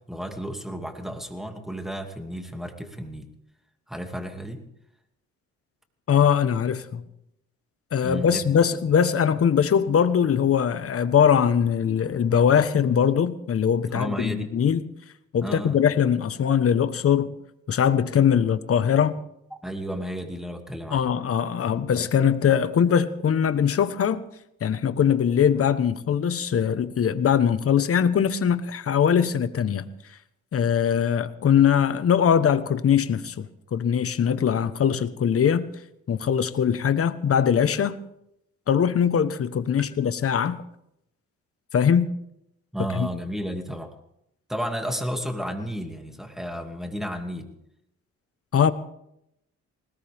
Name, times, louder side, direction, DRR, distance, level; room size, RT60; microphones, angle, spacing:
voice 1, 0.1-3.3 3.9-4.6 8.0-8.4 8.9-9.0 13.9-14.5 15.4-15.8 19.6-21.1 42.7-43.9 44.5-47.5, equal, ahead, 4 dB, 2.5 m, -32 dB
voice 2, 6.1-7.0 7.9-14.8 15.3-17.3 17.7-19.2 20.9-24.2 24.6-29.9 30.5-35.6 36.1-38.0 38.7-40.6 41.7-42.1 43.0-43.1 48.5-48.7, left 8 dB, 50° left, 12 dB, 1.2 m, -21 dB
20.0 x 19.0 x 3.6 m, 0.78 s
cardioid pair, 90°, 30 cm